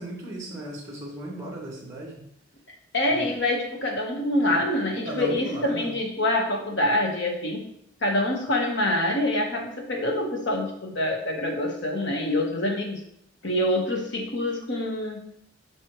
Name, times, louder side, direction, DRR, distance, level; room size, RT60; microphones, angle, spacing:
voice 1, 0.0-2.2 3.1-3.3 5.0-5.9, equal, 15° right, -4 dB, 2.1 m, -36 dB
voice 2, 2.9-7.7 8.0-13.0 13.4-15.2, left 1 dB, 60° left, 1 dB, 1.4 m, -26 dB
7.8 x 5.3 x 3.2 m, 0.72 s
head